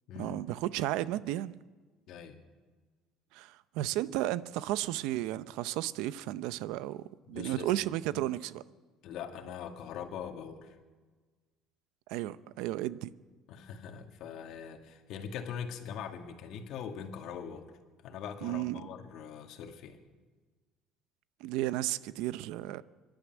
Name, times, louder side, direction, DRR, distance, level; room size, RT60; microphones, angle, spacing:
voice 1, 0.2-1.5 3.3-8.6 12.1-13.1 18.4-18.9 21.4-22.8, right 15 dB, 75° right, 0.7 m, -33 dB
voice 2, 7.3-7.7 8.1-8.2 9.0-10.8 13.5-17.7 18.0-20.0, left 7 dB, 55° left, 2.1 m, -42 dB
25.5 x 11.5 x 9.1 m
cardioid pair, 160°, 0 cm